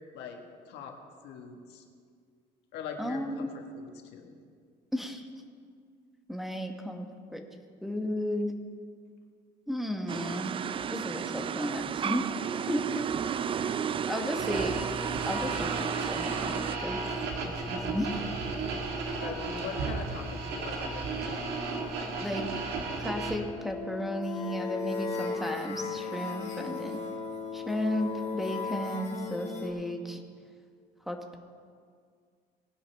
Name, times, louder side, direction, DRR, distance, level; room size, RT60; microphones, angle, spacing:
voice 1, 0.1-0.9 1.2-1.8 2.7-4.4 18.9-21.5, left 6 dB, 85° left, 3 dB, 1.5 m, -42 dB
voice 2, 3.0-3.5 4.9-5.3 6.3-7.4 7.8-8.5 9.7-10.6 10.9-12.3 12.7-13.0 14.0-14.7 15.3-16.3 16.8-17.0 17.4-18.1 22.2-22.5 23.0-27.0 27.5-30.2 31.1-31.4, equal, ahead, 3 dB, 1.1 m, -34 dB
sound 1, 10.1-16.8, right 8 dB, 30° right, 0.3 m, -33 dB
sound 2, 14.4-23.4, right 3 dB, 80° right, 1.8 m, -34 dB
sound 3, 23.1-29.7, left 5 dB, 40° left, 2.1 m, -36 dB
19.0 x 10.5 x 3.4 m, 2.1 s
cardioid pair, 110°, 17 cm